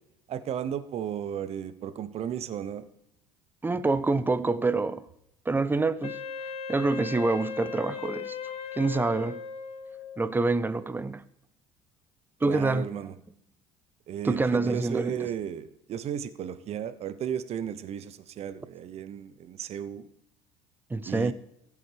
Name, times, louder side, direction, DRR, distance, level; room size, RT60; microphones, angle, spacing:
voice 1, 0.3-2.9 12.4-13.2 14.1-20.1 21.0-21.3, right 9 dB, 45° right, 0.9 m, -34 dB
voice 2, 3.6-5.1 5.5-6.2 6.7-8.4 8.7-9.4 10.2-11.3 12.4-13.0 14.2-15.3 20.9-21.3, right 3 dB, 15° right, 0.6 m, -26 dB
Wind instrument woodwind instrument, 6.0-10.3, left 6 dB, 50° left, 1.0 m, -38 dB
16.0 x 7.1 x 3.4 m
hypercardioid pair, 70°, 14 cm